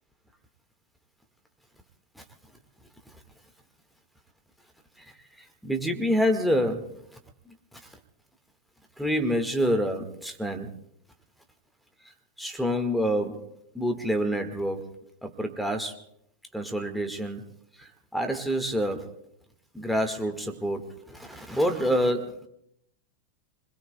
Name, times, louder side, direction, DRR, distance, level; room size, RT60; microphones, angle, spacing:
voice 1, 5.0-6.9 7.5-7.6 9.0-10.7 12.4-14.9 15.2-16.0 16.5-17.4 17.8-19.1 19.7-22.5, equal, ahead, 5 dB, 1.7 m, -28 dB
29.0 x 21.5 x 2.2 m, 0.74 s
figure-of-eight pair, 90°, 0 cm